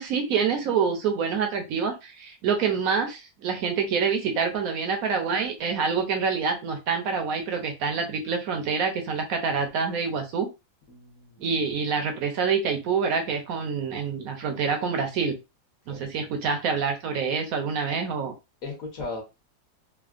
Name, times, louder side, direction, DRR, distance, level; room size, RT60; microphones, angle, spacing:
voice 1, 0.0-10.5 11.4-15.4 15.9-18.3, right 5 dB, 65° right, 5 dB, 0.9 m, -26 dB
voice 2, 10.9-11.4 15.9-16.1 18.6-19.2, left 3 dB, 55° left, 0 dB, 1.2 m, -37 dB
3.4 x 2.1 x 2.4 m, 0.25 s
omnidirectional pair, 2.0 m